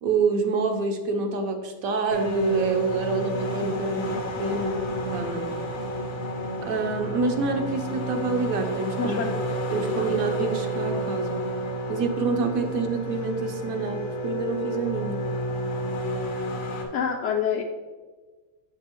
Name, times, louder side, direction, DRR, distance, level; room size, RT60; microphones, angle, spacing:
voice 1, 0.0-5.5 6.6-9.2 9.7-11.5 11.9-15.3, right 4 dB, 70° right, 5 dB, 1.1 m, -27 dB
sound 1, 2.1-16.8, equal, 90° left, 1.7 m, -30 dB
voice 2, 9.0-9.4 16.9-17.6, left 7 dB, 70° left, 1 dB, 0.7 m, -26 dB
6.8 x 6.5 x 3.0 m, 1.3 s
omnidirectional pair, 1.6 m